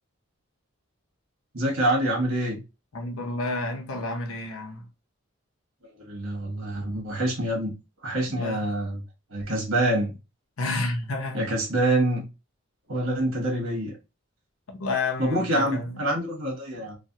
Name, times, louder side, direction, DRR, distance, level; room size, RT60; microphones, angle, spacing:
voice 1, 1.5-2.6 6.0-7.7 8.0-9.0 9.3-10.2 11.3-12.2 12.9-13.9 15.2-17.0, right 1 dB, 80° right, 1.4 m, -26 dB
voice 2, 2.9-4.9 8.3-8.7 10.6-11.4 14.7-16.0, left 2 dB, 80° left, 0.7 m, -30 dB
3.2 x 2.2 x 2.7 m
head